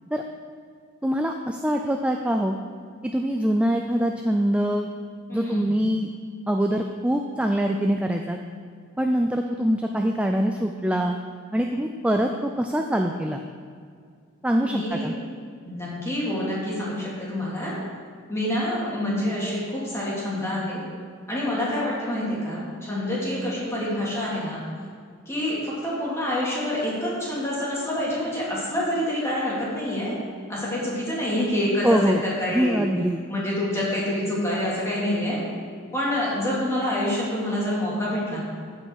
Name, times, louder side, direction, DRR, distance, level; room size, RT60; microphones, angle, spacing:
voice 1, 1.0-2.6 3.0-4.9 5.3-6.1 6.5-8.4 9.0-11.2 11.5-13.4 14.4-15.1 31.8-32.2 32.5-33.2, equal, 5° right, 3 dB, 0.3 m, -24 dB
voice 2, 5.3-5.7 14.6-15.1 15.6-17.7 18.3-20.8 21.3-24.6 25.3-30.1 30.5-32.8 33.3-35.4 35.9-38.4, left 1 dB, 15° left, -7 dB, 2.7 m, -27 dB
14.5 x 5.4 x 4.8 m, 2.1 s
head